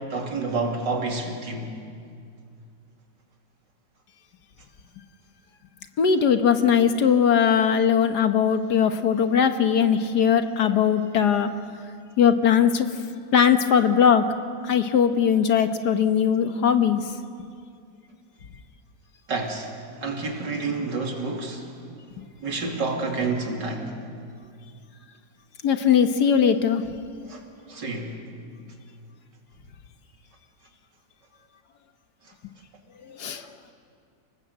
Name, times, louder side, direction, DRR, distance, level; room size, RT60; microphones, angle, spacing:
voice 1, 0.1-1.7 19.3-19.7 20.0-21.6 22.4-23.9 27.3-27.4 27.7-28.2, right 3 dB, 70° right, 2 dB, 3.2 m, -29 dB
voice 2, 6.0-11.5 12.2-12.9 13.3-14.3 14.6-17.1 22.2-22.3 25.6-26.9 33.0-33.5, left 7 dB, 65° left, 8 dB, 1.7 m, -20 dB
30.0 x 19.5 x 8.0 m, 2.3 s
omnidirectional pair, 2.0 m